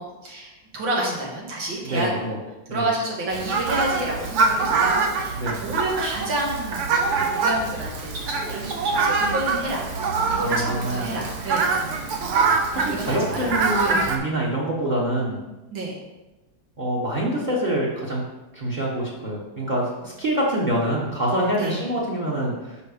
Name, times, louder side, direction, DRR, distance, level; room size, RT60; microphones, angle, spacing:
voice 1, 0.0-2.4 2.7-11.7 12.7-13.5 13.8-14.1 15.7-16.0 21.6-21.9, right 1 dB, 80° right, -3 dB, 2.4 m, -29 dB
voice 2, 1.8-2.3 2.7-2.9 5.4-5.5 10.4-11.1 12.7-15.4 16.8-18.2 18.5-22.8, right 1 dB, 30° right, -5 dB, 1.2 m, -25 dB
Fowl, 3.3-14.2, right 4 dB, 60° right, 0.8 m, -24 dB
5.8 x 5.4 x 5.0 m, 1.0 s
omnidirectional pair, 2.0 m